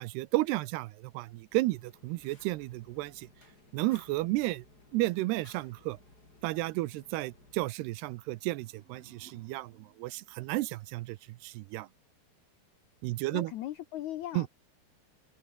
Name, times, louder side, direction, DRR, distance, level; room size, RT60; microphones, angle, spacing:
voice 1, 0.0-3.3 3.7-4.6 4.9-6.0 6.4-11.2 11.4-11.9 13.0-13.5 14.4-14.5, right 19 dB, 80° right, 2.7 m, -32 dB
Fire, 1.5-7.6, left 2 dB, 20° left, 6.5 m, -59 dB
sound 1, 8.1-11.1, right 5 dB, 55° right, 6.6 m, -62 dB
voice 2, 13.3-14.5, left 13 dB, 75° left, 1.7 m, -38 dB
omnidirectional pair, 4.7 m